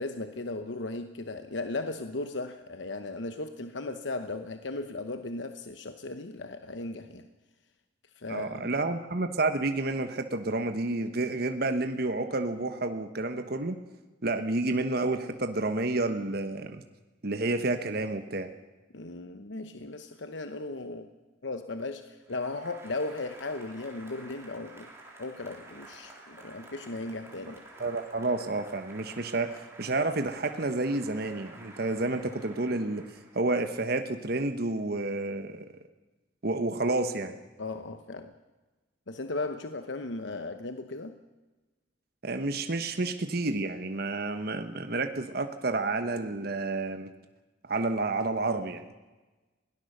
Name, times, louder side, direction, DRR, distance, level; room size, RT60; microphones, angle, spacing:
voice 1, 0.0-7.2 8.2-8.7 18.9-21.1 21.4-24.9 25.2-27.6 37.6-38.3 39.1-41.2, left 2 dB, 65° left, 8 dB, 1.0 m, -36 dB
voice 2, 8.3-13.7 14.2-16.8 17.2-18.5 27.8-33.0 33.3-35.6 36.4-37.4 42.2-47.1 47.7-48.8, right 2 dB, 50° right, 7 dB, 1.1 m, -30 dB
Applause, 22.2-33.7, right 2 dB, 15° right, 3.8 m, -51 dB
22.0 x 17.5 x 6.6 m, 1.2 s
head